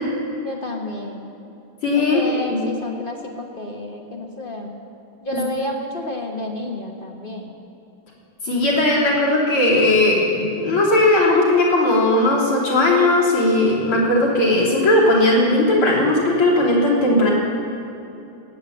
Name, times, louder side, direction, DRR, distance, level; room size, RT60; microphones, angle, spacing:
voice 1, 0.4-1.3 2.0-4.7 5.2-7.5, left 2 dB, 30° left, 1 dB, 1.2 m, -30 dB
voice 2, 1.8-2.2 2.5-2.6 5.3-5.4 8.4-17.3, left 2 dB, 85° left, -5 dB, 4.3 m, -17 dB
18.0 x 8.5 x 8.6 m, 2.8 s
omnidirectional pair, 2.3 m